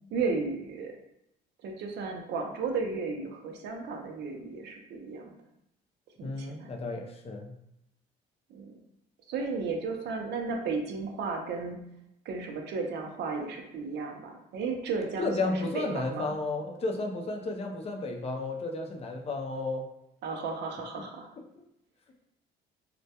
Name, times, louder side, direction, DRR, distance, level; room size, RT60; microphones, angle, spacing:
voice 1, 0.1-0.9 1.6-5.4 6.2-6.7 8.5-8.8 9.3-11.8 12.2-16.4 20.2-21.3, right 4 dB, 65° right, 2 dB, 0.5 m, -34 dB
voice 2, 6.2-7.5 15.2-19.8 21.0-21.1 21.6-21.7, left 2 dB, 35° left, 2 dB, 0.4 m, -33 dB
2.2 x 2.1 x 2.7 m, 0.81 s
cardioid pair, 100°, 19 cm